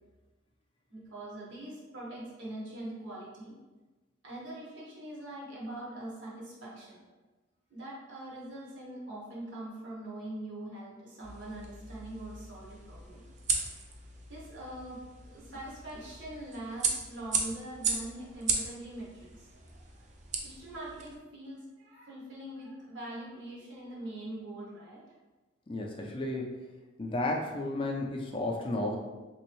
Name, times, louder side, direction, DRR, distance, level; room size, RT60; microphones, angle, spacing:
voice 1, 0.9-3.5 4.2-7.0 7.7-13.2 14.3-15.0 15.3-19.8 20.4-25.0, right 1 dB, 70° right, -5 dB, 1.2 m, -43 dB
sound 1, 11.2-21.2, right 4 dB, 40° right, 0.4 m, -37 dB
voice 2, 25.7-26.6 27.0-29.0, left 2 dB, 25° left, 1 dB, 0.4 m, -33 dB
3.4 x 3.0 x 3.0 m, 1.2 s
head